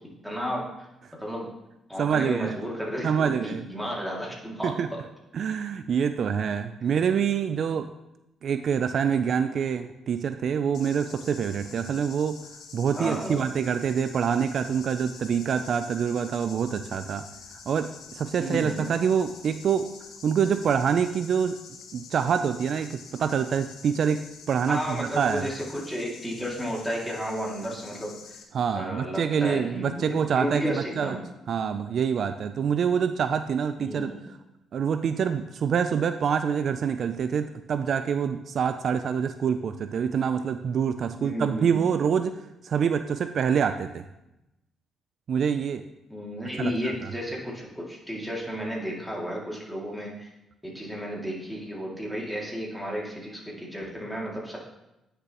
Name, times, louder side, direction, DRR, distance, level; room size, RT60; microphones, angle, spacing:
voice 1, 0.2-0.7 1.2-1.5 1.9-5.0 12.9-13.5 18.4-18.9 24.7-28.1 28.7-31.2 33.8-34.3 41.2-42.0 46.1-50.3 50.6-54.6, equal, ahead, -3 dB, 2.4 m, -33 dB
voice 2, 2.0-2.5 3.0-3.7 4.6-4.9 5.3-7.9 8.4-12.4 12.7-17.2 17.7-19.9 20.2-21.6 21.9-25.5 28.5-31.2 31.5-34.1 34.7-44.1 45.3-45.8 46.6-47.1, right 7 dB, 60° right, 9 dB, 0.4 m, -26 dB
sound 1, 10.7-28.4, left 6 dB, 80° left, 1.0 m, -47 dB
9.7 x 6.6 x 3.0 m, 0.91 s
cardioid pair, 90°, 0 cm